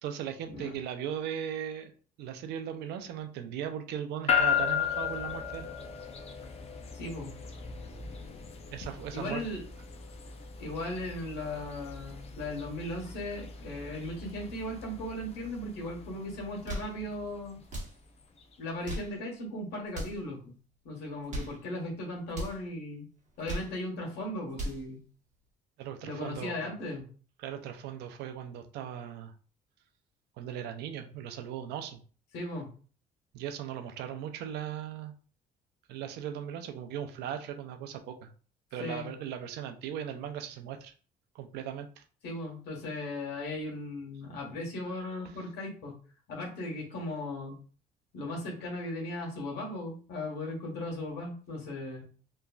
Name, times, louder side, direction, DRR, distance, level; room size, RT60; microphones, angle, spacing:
voice 1, 0.0-1.9 2.2-5.7 8.7-9.4 25.8-26.7 27.4-29.3 30.4-32.0 33.3-35.1 35.9-38.3 38.7-40.9 41.3-42.0, right 9 dB, 80° right, 7 dB, 0.5 m, -38 dB
sound 1, 4.3-18.6, left 8 dB, 40° left, 0.5 m, -36 dB
voice 2, 6.9-7.4 9.1-9.6 10.6-17.6 18.6-20.5 20.8-23.1 23.4-25.0 26.0-27.1 32.3-32.7 38.8-39.1 42.2-45.9 46.3-47.6 48.1-52.0, left 1 dB, 80° left, 0 dB, 1.2 m, -37 dB
sound 2, 16.6-17.0 17.6-18.0 18.7-19.2 19.9-20.2 21.1-21.6 22.3-22.6 23.2-23.8 24.3-24.9, right 1 dB, 45° right, 1.1 m, -38 dB
3.0 x 2.4 x 2.3 m, 0.41 s
cardioid pair, 110°, 17 cm